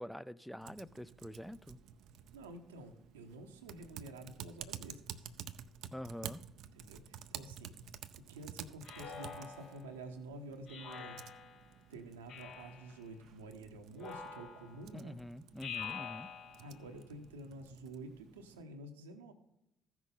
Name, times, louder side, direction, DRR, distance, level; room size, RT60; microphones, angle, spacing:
voice 1, 0.0-1.8 5.9-6.4 14.9-16.3, equal, ahead, 0.4 m, -45 dB
Typing, 0.6-18.6, right 9 dB, 60° right, 0.5 m, -52 dB
voice 2, 2.3-5.3 6.7-7.7 8.3-11.2 11.9-15.2 16.6-19.3, right 2 dB, 80° right, 0.9 m, -49 dB
Speech synthesizer, 8.8-9.9 10.7-11.7 12.3-12.9 14.0-14.9 15.6-16.8, left 6 dB, 60° left, 1.2 m, -46 dB
14.5 x 6.0 x 3.7 m
figure-of-eight pair, 50°, 0 cm